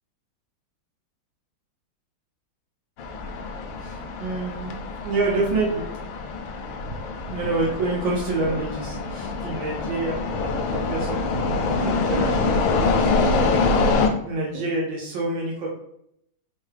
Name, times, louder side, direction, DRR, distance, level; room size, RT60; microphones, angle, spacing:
sound 1, 3.0-14.1, left 3 dB, 75° left, 1.3 m, -25 dB
voice 1, 3.8-6.3 6.8-13.5 14.2-15.7, right 2 dB, 75° right, -3 dB, 1.5 m, -28 dB
3.6 x 2.2 x 3.2 m, 0.74 s
omnidirectional pair, 2.2 m